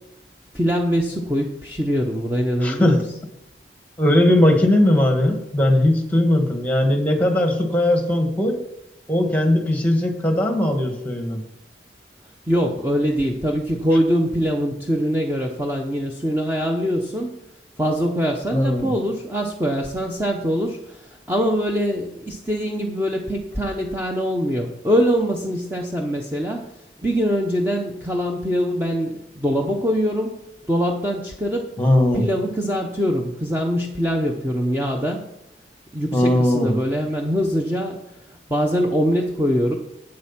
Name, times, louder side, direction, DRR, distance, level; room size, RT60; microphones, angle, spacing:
voice 1, 0.5-3.0 12.5-17.4 17.8-26.7 27.0-30.4 30.7-31.7 32.1-35.3 35.9-38.0 38.5-39.7, equal, 10° right, 1 dB, 0.7 m, -23 dB
voice 2, 2.6-3.0 4.0-8.6 9.1-11.4 18.5-18.9 31.8-32.3 36.1-36.8, left 1 dB, 10° left, 4 dB, 1.4 m, -19 dB
8.8 x 7.9 x 5.7 m, 0.83 s
head